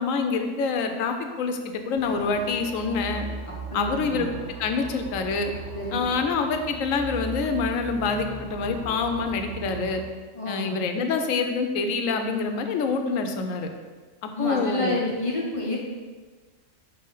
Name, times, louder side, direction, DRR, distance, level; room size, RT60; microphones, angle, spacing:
voice 1, 0.0-3.3 3.7-4.3 4.6-5.5 5.9-10.0 10.5-13.7 14.2-15.0, left 4 dB, 80° left, 6 dB, 1.0 m, -26 dB
sound 1, 1.9-9.9, right 3 dB, 10° right, 0.8 m, -38 dB
voice 2, 3.7-4.4 5.7-6.1 10.3-10.8 14.3-15.8, left 1 dB, 30° left, -3 dB, 0.7 m, -29 dB
5.5 x 3.2 x 5.4 m, 1.4 s
omnidirectional pair, 1.4 m